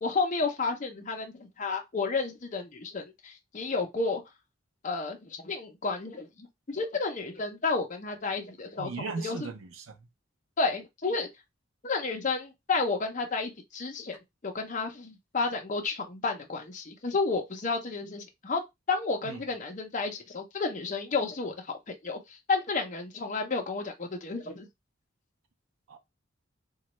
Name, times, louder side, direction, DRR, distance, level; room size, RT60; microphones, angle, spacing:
voice 1, 0.0-4.2 4.8-9.5 10.6-11.3 11.8-14.2 14.4-18.6 18.9-21.5 21.9-22.2 22.5-24.7, left 4 dB, 40° left, 0.6 m, -31 dB
voice 2, 8.8-9.8 19.3-19.4 25.9-26.0, right 4 dB, 85° right, 0.6 m, -37 dB
3.0 x 2.3 x 2.9 m
head